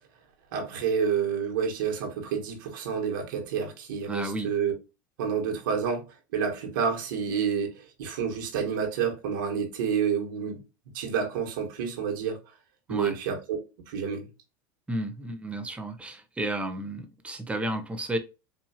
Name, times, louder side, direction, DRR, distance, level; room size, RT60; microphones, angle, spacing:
voice 1, 0.5-4.7 5.2-6.0 6.3-10.6 10.9-12.4 12.9-13.6 13.9-14.2, right 7 dB, 75° right, 1.6 m, -29 dB
voice 2, 4.1-4.5 12.9-13.2 14.9-18.2, right 1 dB, 10° right, 0.8 m, -32 dB
4.5 x 2.8 x 2.9 m
supercardioid pair, 105°, 11 cm